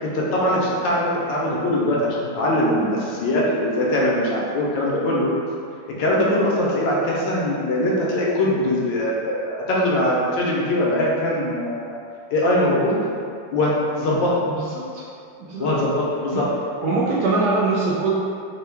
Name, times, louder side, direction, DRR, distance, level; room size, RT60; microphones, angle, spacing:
voice 1, 0.0-5.3 6.0-11.9 12.3-13.0 13.5-14.4 15.6-16.5, left 1 dB, 70° left, -4 dB, 1.3 m, -21 dB
voice 2, 16.8-18.1, right 3 dB, 70° right, -6 dB, 0.9 m, -22 dB
4.4 x 2.3 x 3.4 m, 2.4 s
omnidirectional pair, 2.2 m